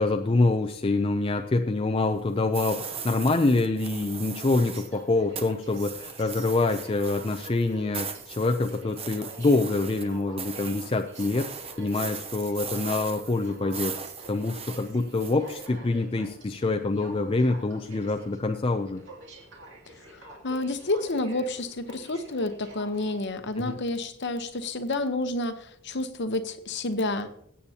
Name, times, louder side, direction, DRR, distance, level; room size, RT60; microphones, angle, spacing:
voice 1, 0.0-11.5 11.8-14.0 14.3-19.0 23.6-23.8, left 2 dB, 25° left, 5 dB, 0.5 m, -26 dB
sound 1, 2.5-5.0 5.4-15.7, right 6 dB, 25° right, 0.8 m, -39 dB
Aircraft, 3.9-23.3, right 1 dB, 55° right, 2.4 m, -48 dB
voice 2, 20.0-27.3, left 2 dB, 50° left, 9 dB, 0.9 m, -30 dB
21.0 x 8.5 x 2.8 m, 0.70 s
head